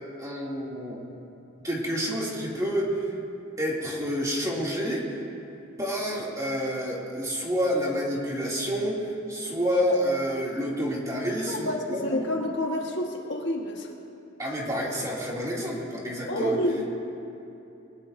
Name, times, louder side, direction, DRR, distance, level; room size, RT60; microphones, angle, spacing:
voice 1, 0.2-1.0 1.6-3.1 3.6-5.2 5.8-12.3 14.4-16.6, equal, 15° right, -4 dB, 2.7 m, -28 dB
voice 2, 11.5-13.9 16.3-17.0, left 1 dB, 60° left, 1 dB, 1.5 m, -29 dB
23.0 x 19.0 x 2.7 m, 2.9 s
head